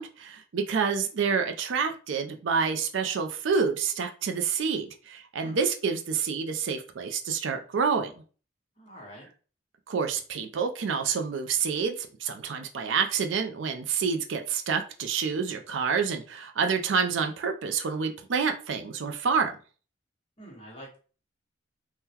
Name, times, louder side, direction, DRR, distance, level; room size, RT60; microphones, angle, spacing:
voice 1, 0.0-8.1 9.9-19.5, right 6 dB, 70° right, 0.4 m, -28 dB
voice 2, 8.8-9.3 20.4-21.0, equal, 30° left, 1.1 m, -46 dB
3.6 x 2.1 x 2.8 m
head